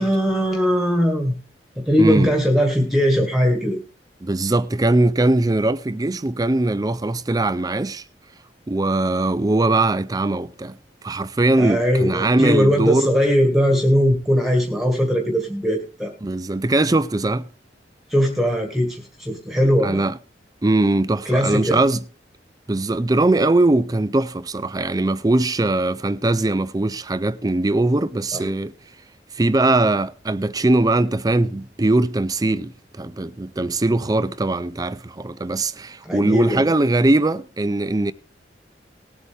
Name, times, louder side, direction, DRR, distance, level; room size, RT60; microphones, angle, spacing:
voice 1, 0.0-1.3 1.7-3.8 11.6-16.1 18.1-20.0 21.2-21.8 28.3-28.5 36.0-36.7, equal, ahead, 1.8 m, -20 dB
voice 2, 2.0-2.3 4.2-8.0 8.7-10.8 11.0-13.1 16.2-17.5 19.8-20.1 20.6-22.0 22.7-28.7 29.3-38.1, right 2 dB, 20° right, 0.5 m, -20 dB
19.5 x 8.4 x 3.4 m
head